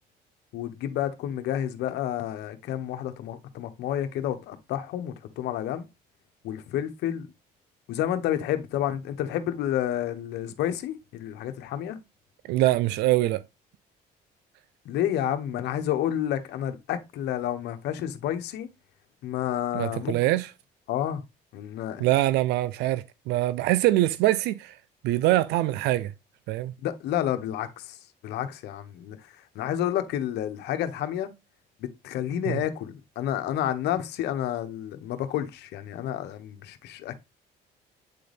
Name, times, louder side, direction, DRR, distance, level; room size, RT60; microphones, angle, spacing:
voice 1, 0.5-5.8 6.4-7.3 7.9-12.0 14.8-18.7 19.2-20.1 20.9-21.2 21.5-22.0 26.8-27.9 28.2-29.2 29.5-31.3 31.8-37.2, left 11 dB, 80° left, 1.2 m, -30 dB
voice 2, 12.5-13.4 19.7-20.5 22.0-24.8 25.0-26.1 26.5-26.7 32.4-32.6, right 16 dB, 90° right, 0.5 m, -24 dB
8.5 x 4.0 x 3.4 m
cardioid pair, 110°, 17 cm